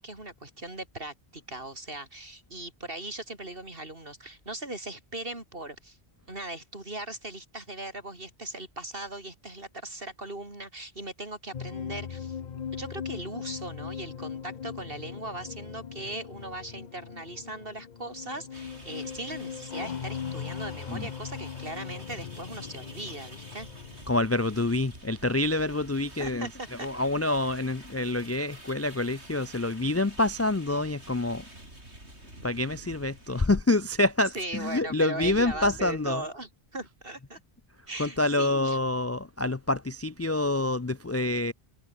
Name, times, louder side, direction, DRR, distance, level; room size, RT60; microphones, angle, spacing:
voice 1, 0.0-6.0 6.3-12.4 12.7-23.7 26.2-26.9 34.3-37.4 37.9-38.8, right 2 dB, 55° right, 5.0 m, -39 dB
sound 1, 11.5-24.3, left 7 dB, 45° left, 0.8 m, -39 dB
sound 2, 18.5-33.5, right 1 dB, 85° right, 8.1 m, -49 dB
voice 2, 24.1-26.5 26.8-31.5 32.4-36.2 38.0-41.5, left 2 dB, 25° left, 0.3 m, -27 dB
omnidirectional pair, 1.1 m